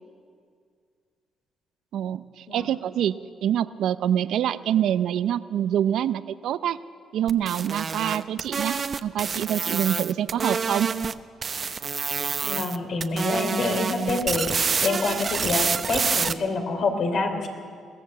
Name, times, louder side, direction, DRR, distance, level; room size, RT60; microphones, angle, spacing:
voice 1, 1.9-3.2 3.4-6.8 7.1-10.9, right 10 dB, 75° right, 14 dB, 0.6 m, -26 dB
sound 1, 7.3-11.1 11.4-12.8 13.0-16.3, right 5 dB, 40° right, 0.7 m, -27 dB
voice 2, 12.4-17.5, left 3 dB, 60° left, 5 dB, 3.2 m, -27 dB
22.5 x 16.5 x 7.5 m, 2.1 s
cardioid pair, 90°, 0 cm